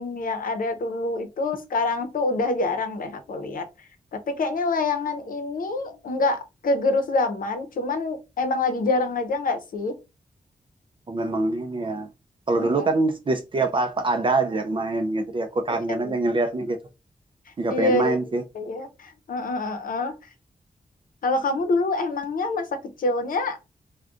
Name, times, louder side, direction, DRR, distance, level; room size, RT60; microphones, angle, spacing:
voice 1, 0.0-3.6 4.1-10.0 12.6-12.9 16.0-16.1 17.7-18.2 18.5-20.1 21.2-23.6, left 3 dB, 75° left, 0.7 m, -26 dB
voice 2, 11.1-12.1 12.5-16.8 17.6-18.4, right 2 dB, 35° right, 0.4 m, -24 dB
2.4 x 2.2 x 3.7 m
wide cardioid pair, 100°, 15 cm